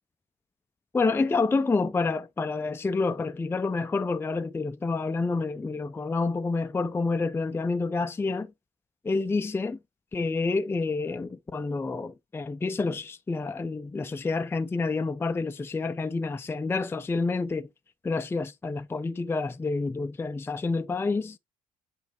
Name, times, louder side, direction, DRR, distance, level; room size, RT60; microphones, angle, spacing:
voice 1, 0.9-8.5 9.0-9.8 10.1-17.7 18.0-21.4, left 3 dB, 15° left, 0.5 m, -28 dB
8.3 x 4.5 x 3.1 m
cardioid pair, 110°, 17 cm